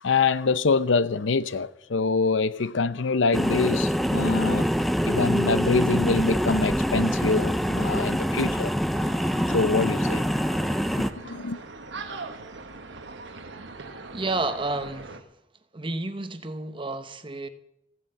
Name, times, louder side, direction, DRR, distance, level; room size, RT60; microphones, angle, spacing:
voice 1, 0.0-4.7 5.0-8.7 9.5-10.2 11.2-11.6, left 4 dB, 85° left, 0.7 m, -25 dB
sound 1, 3.3-11.1, equal, ahead, 0.6 m, -25 dB
sound 2, 8.9-15.2, right 3 dB, 75° right, 1.4 m, -41 dB
voice 2, 14.1-15.2 15.7-17.5, right 2 dB, 25° right, 0.9 m, -30 dB
15.0 x 8.9 x 7.8 m
head